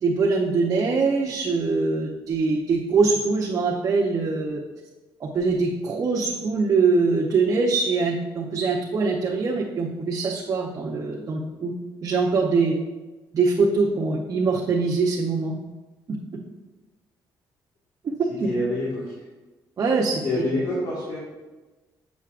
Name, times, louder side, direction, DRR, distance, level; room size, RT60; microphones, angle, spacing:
voice 1, 0.0-4.6 5.2-11.7 12.0-12.7 13.3-15.5 18.4-18.5 19.8-20.2, right 4 dB, 40° right, -2 dB, 0.7 m, -23 dB
voice 2, 18.4-19.0 20.2-21.2, left 2 dB, 60° left, -7 dB, 1.7 m, -26 dB
7.1 x 6.7 x 2.4 m, 1.2 s
cardioid pair, 125°, 8 cm